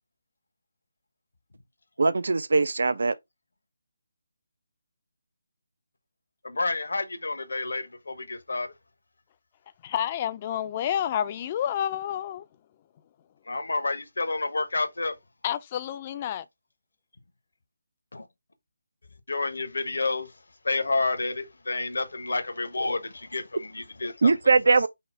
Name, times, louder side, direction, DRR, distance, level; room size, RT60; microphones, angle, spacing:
voice 1, 2.0-3.1 24.2-24.9, right 4 dB, 60° right, 0.4 m, -21 dB
voice 2, 6.4-8.7 13.5-15.1 18.1-18.3 19.3-20.3 20.6-24.8, left 3 dB, 70° left, 0.9 m, -30 dB
voice 3, 9.8-12.5 15.4-16.4, left 10 dB, 30° left, 0.4 m, -29 dB
5.6 x 2.1 x 4.4 m
figure-of-eight pair, 150°, 0 cm